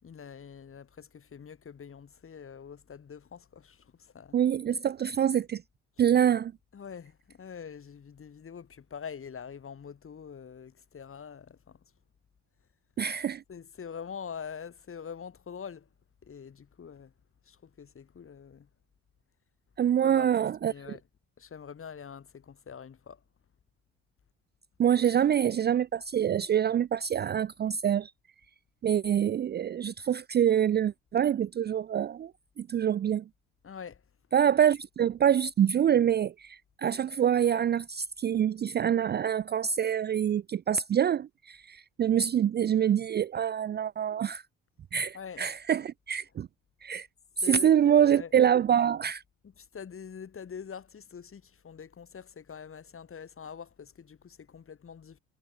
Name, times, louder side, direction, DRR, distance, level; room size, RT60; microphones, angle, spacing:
voice 1, 0.0-4.4 6.0-6.1 6.7-11.8 13.5-15.9 16.2-17.1 17.4-18.7 20.0-21.0 21.4-23.2 33.6-34.0 45.1-45.5 47.4-48.3 49.4-55.2, left 7 dB, 40° left, 5.0 m, -44 dB
voice 2, 4.3-5.6 6.0-6.5 13.0-13.4 19.8-21.0 24.8-28.1 28.8-32.3 32.6-33.2 34.3-44.4 44.9-46.5 46.8-47.1 47.5-49.2, right 9 dB, 30° right, 0.5 m, -26 dB
hypercardioid pair, 65°, 34 cm